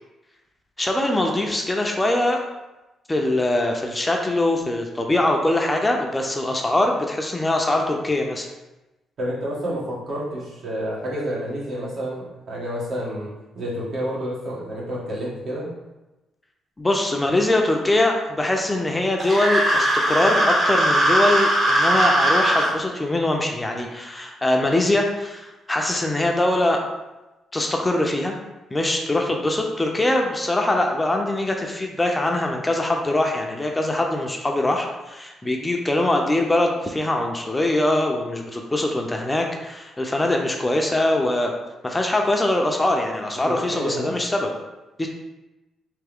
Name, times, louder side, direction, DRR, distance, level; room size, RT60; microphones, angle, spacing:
voice 1, 0.8-2.4 3.1-8.5 16.8-26.8 27.5-28.4 28.7-41.5 41.8-44.5 45.0-45.1, left 1 dB, 15° left, 2 dB, 0.5 m, -22 dB
voice 2, 9.2-13.3 13.5-15.7 43.5-44.1, equal, 60° right, -6 dB, 1.4 m, -29 dB
sound 1, 19.2-22.7, right 1 dB, 35° right, 1.0 m, -19 dB
3.4 x 3.0 x 3.5 m, 1.0 s
cardioid pair, 90°, 0 cm